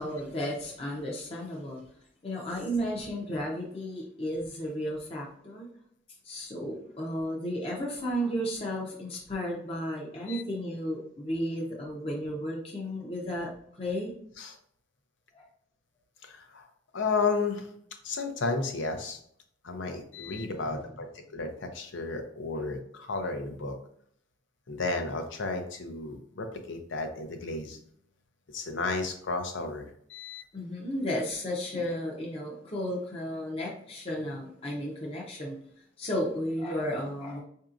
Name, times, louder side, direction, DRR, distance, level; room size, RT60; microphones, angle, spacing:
voice 1, 0.0-1.8 2.2-5.7 6.2-13.5 13.8-14.1 15.3-15.4 20.4-20.9 30.5-35.6 36.0-37.4, equal, 30° left, -3 dB, 0.7 m, -33 dB
voice 2, 16.2-16.7 16.9-17.7 18.0-19.2 19.6-21.1 21.3-23.8 24.7-27.8 28.5-30.4, left 3 dB, 85° left, 5 dB, 0.7 m, -33 dB
4.6 x 2.7 x 2.5 m, 0.66 s
head